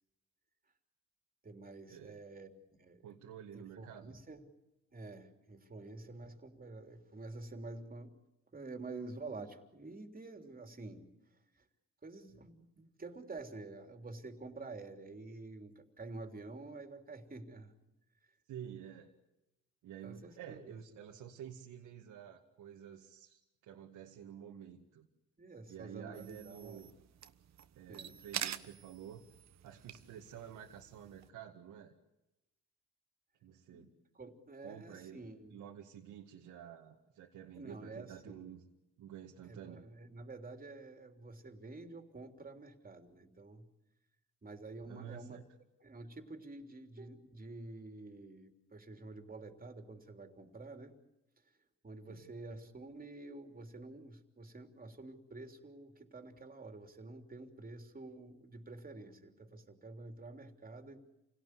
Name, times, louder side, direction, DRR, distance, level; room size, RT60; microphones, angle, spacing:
voice 1, 1.4-3.0 3.5-4.4 4.9-8.1 8.5-11.0 11.3-11.7 12.0-17.7 18.2-18.3 20.0-20.8 25.4-26.9 27.9-28.1 33.7-35.6 37.6-38.6 39.5-43.7 44.4-45.4 45.8-51.0 51.8-61.0, right 3 dB, 30° right, 5 dB, 3.5 m, -49 dB
voice 2, 3.0-4.2 18.5-19.1 19.8-25.1 25.7-26.9 27.8-29.2 29.6-31.9 33.4-33.9 34.6-35.2 35.5-38.6 39.0-39.8 44.9-45.4 52.1-52.2, right 9 dB, 85° right, 0 dB, 2.1 m, -50 dB
sound 1, 26.1-31.3, right 10 dB, 65° right, 1.3 m, -46 dB
28.5 x 18.0 x 9.7 m, 0.94 s
cardioid pair, 90°, 30 cm